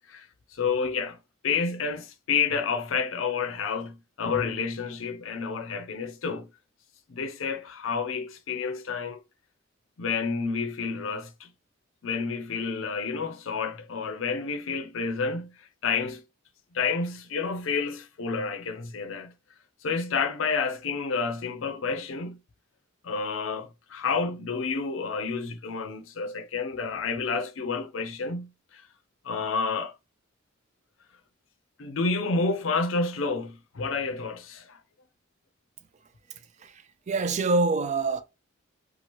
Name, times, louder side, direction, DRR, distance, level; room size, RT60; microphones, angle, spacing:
voice 1, 0.5-1.2 1.4-6.5 7.1-9.2 10.0-11.5 12.0-16.2 16.7-19.3 19.8-22.4 23.0-28.8 29.2-29.9 31.8-34.8, left 5 dB, 75° left, 0.5 m, -29 dB
voice 2, 36.6-38.2, right 3 dB, 35° right, 0.4 m, -26 dB
2.9 x 2.4 x 2.9 m
head